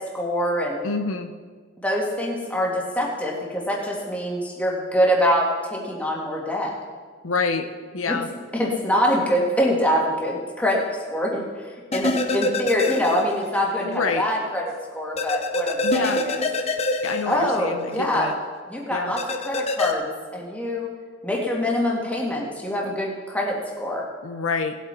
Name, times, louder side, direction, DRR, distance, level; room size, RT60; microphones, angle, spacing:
voice 1, 0.0-0.9 1.8-6.7 8.1-8.2 8.5-11.5 11.9-16.4 17.3-18.3 18.7-20.9 21.2-24.1, equal, 5° left, -3 dB, 2.1 m, -24 dB
voice 2, 0.8-1.3 7.2-7.6 7.9-8.3 13.8-14.2 15.8-16.2 17.0-18.3 18.9-19.1 24.2-24.8, left 4 dB, 80° left, 6 dB, 0.9 m, -27 dB
sound 1, 11.9-13.6 13.9-14.0 15.2-18.0 19.2-19.9, left 2 dB, 30° left, 0.8 m, -25 dB
19.0 x 8.0 x 4.5 m, 1.6 s
head